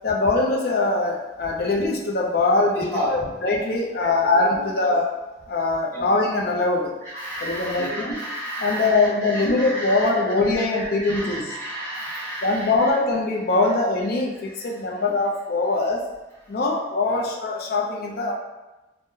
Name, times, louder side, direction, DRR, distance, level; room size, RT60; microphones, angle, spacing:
voice 1, 0.0-5.0 5.5-7.0 7.4-8.1 8.6-11.5 12.4-16.1 16.5-18.3, left 3 dB, 55° left, 0 dB, 0.5 m, -22 dB
voice 2, 2.7-3.3 4.0-4.9 5.9-6.1 7.0-12.9 14.3-15.0 16.4-16.6 17.0-17.2, equal, 15° left, -11 dB, 1.1 m, -33 dB
3.7 x 2.1 x 2.7 m, 1.1 s
head